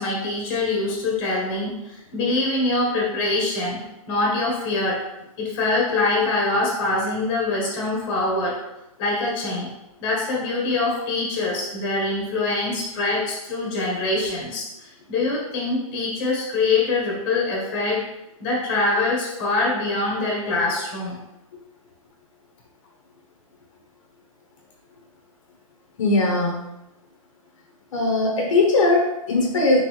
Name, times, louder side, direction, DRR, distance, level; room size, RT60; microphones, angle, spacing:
voice 1, 0.0-5.0 5.4-8.6 9.0-9.7 10.0-18.0 18.4-21.2, left 2 dB, 25° left, -3 dB, 1.4 m, -24 dB
voice 2, 26.0-26.6 27.9-29.8, left 2 dB, 55° left, -1 dB, 1.1 m, -19 dB
3.9 x 3.6 x 3.2 m, 0.89 s
hypercardioid pair, 155°, 19 cm